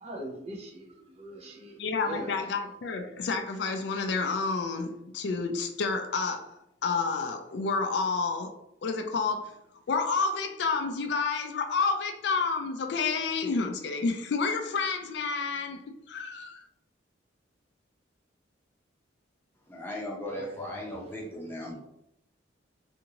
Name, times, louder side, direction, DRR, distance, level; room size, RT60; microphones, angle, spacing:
voice 1, 0.0-1.8 2.0-2.4 20.2-20.4, right 1 dB, 35° right, 0.5 m, -41 dB
voice 2, 1.8-6.6 6.8-8.6 8.8-9.6 9.9-16.6, left 4 dB, 60° left, 0.3 m, -29 dB
voice 3, 19.7-21.8, left 1 dB, 10° left, 0.7 m, -37 dB
2.8 x 2.5 x 2.8 m
head